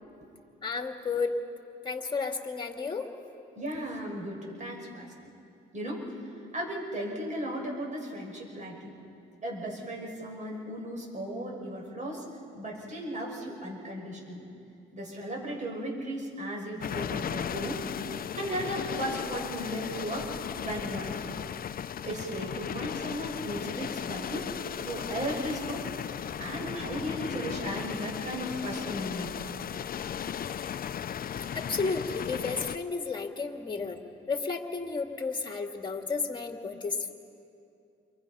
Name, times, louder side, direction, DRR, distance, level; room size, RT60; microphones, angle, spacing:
voice 1, 0.6-1.3 1.8-3.1 31.5-34.0 34.3-37.1, left 4 dB, 25° left, 4 dB, 2.3 m, -32 dB
voice 2, 3.6-5.1 5.7-6.0 6.5-8.9 9.4-12.2 12.5-14.4 14.9-17.8 18.3-20.3 20.6-21.3 22.1-24.5 24.8-25.8 26.4-29.5, right 1 dB, 40° right, -1 dB, 6.5 m, -36 dB
sound 1, 16.8-32.8, left 8 dB, 50° left, 0.7 m, -36 dB
29.0 x 23.5 x 5.6 m, 2.6 s
cardioid pair, 90°, 20 cm